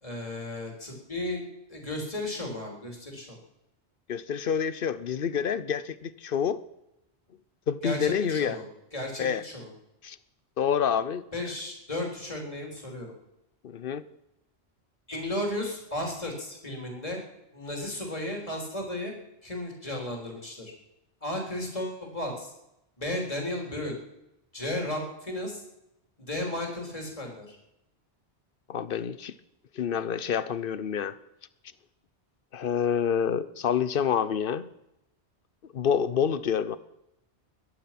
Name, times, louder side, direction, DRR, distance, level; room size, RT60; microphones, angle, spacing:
voice 1, 0.0-3.4 7.8-8.6 8.9-9.7 11.3-13.1 15.1-17.2 17.5-19.1 19.4-20.7 21.2-22.5 23.0-24.0 24.5-25.6 26.2-27.6, left 1 dB, 30° left, 1 dB, 3.9 m, -34 dB
voice 2, 4.1-6.6 7.7-8.6 9.2-9.4 10.0-10.2 10.6-11.2 13.6-14.0 28.7-29.3 29.8-31.1 32.5-34.7 35.7-36.8, left 7 dB, 55° left, 16 dB, 0.9 m, -27 dB
21.5 x 10.5 x 6.0 m, 0.85 s
omnidirectional pair, 1.1 m